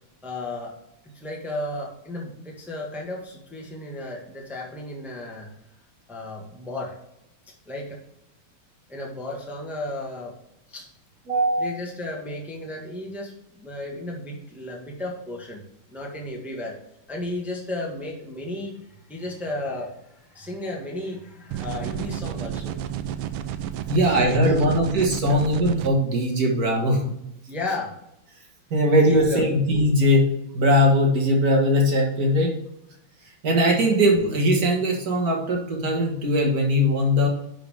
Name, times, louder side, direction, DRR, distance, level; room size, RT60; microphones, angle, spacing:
voice 1, 0.2-0.7 1.0-5.5 6.1-6.9 7.7-8.0 8.9-10.3 10.7-10.9 11.6-15.6 15.9-16.8 17.1-18.8 19.1-22.8 23.9-24.7 25.0-25.5 27.5-27.9 28.9-29.5, left 2 dB, ahead, -2 dB, 1.2 m, -34 dB
voice 2, 11.3-11.7 23.9-27.1 28.7-32.5 33.4-37.3, equal, 45° right, -1 dB, 2.2 m, -20 dB
sound 1, 21.5-25.9, right 10 dB, 90° right, 1.5 m, -31 dB
10.0 x 4.8 x 3.6 m, 0.81 s
omnidirectional pair, 2.4 m